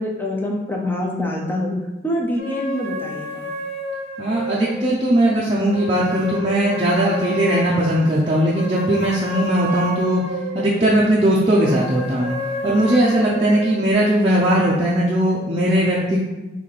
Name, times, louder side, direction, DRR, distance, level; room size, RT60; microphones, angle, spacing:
voice 1, 0.0-1.7 2.0-3.5, left 1 dB, 10° left, -1 dB, 0.5 m, -25 dB
sound 1, 2.4-5.1 5.7-10.8 11.4-13.9, equal, 75° left, 1.0 m, -30 dB
voice 2, 4.2-10.2 10.5-12.3 12.6-16.2, right 1 dB, 30° right, -6 dB, 0.5 m, -19 dB
4.1 x 3.3 x 3.2 m, 1.1 s
head